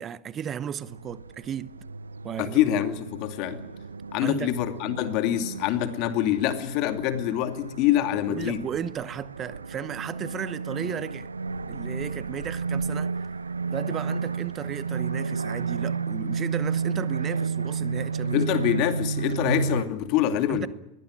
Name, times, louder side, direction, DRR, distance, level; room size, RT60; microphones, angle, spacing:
voice 1, 0.0-1.8 2.2-2.6 4.2-4.6 8.3-11.3 11.7-13.2 13.7-18.4 20.5-20.7, right 9 dB, 30° right, 0.9 m, -34 dB
sound 1, 0.8-19.8, right 5 dB, 90° right, 0.8 m, -32 dB
voice 2, 2.4-3.6 4.1-8.6 18.3-20.7, left 11 dB, 50° left, 2.5 m, -25 dB
21.5 x 17.5 x 10.0 m
hypercardioid pair, 90°, 0 cm